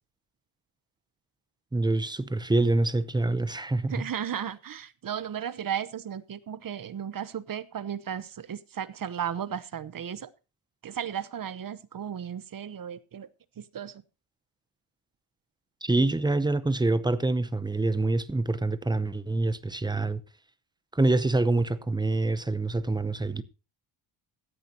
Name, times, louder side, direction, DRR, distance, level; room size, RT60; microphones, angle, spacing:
voice 1, 1.7-4.1 15.8-20.2 20.9-23.4, right 2 dB, 10° right, 0.7 m, -26 dB
voice 2, 3.9-10.3 10.8-13.3 13.6-14.0, right 9 dB, 40° right, 0.9 m, -35 dB
16.0 x 13.5 x 2.9 m
wide cardioid pair, 165°, 50 cm